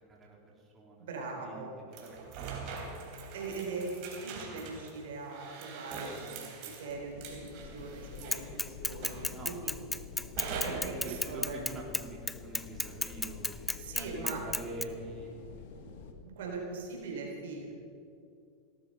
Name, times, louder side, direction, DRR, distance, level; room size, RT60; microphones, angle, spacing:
voice 1, 0.1-1.1 1.4-1.6 1.9-2.9 6.2-6.4 9.3-9.6 10.5-15.7, right 2 dB, 25° right, -2 dB, 3.4 m, -46 dB
voice 2, 1.0-1.7 3.3-9.7 10.6-11.6 13.8-14.4 16.2-17.7, right 3 dB, 75° right, 0 dB, 3.9 m, -41 dB
sound 1, 1.9-8.6 9.0-9.6 10.4-11.3, right 5 dB, 55° right, 3.7 m, -43 dB
sound 2, 6.9-16.1, left 6 dB, 65° left, 1.8 m, -48 dB
Bicycle / Mechanisms, 8.3-14.8, left 2 dB, 10° left, 0.5 m, -33 dB
17.5 x 13.0 x 5.6 m, 2.6 s
hypercardioid pair, 110°, 0 cm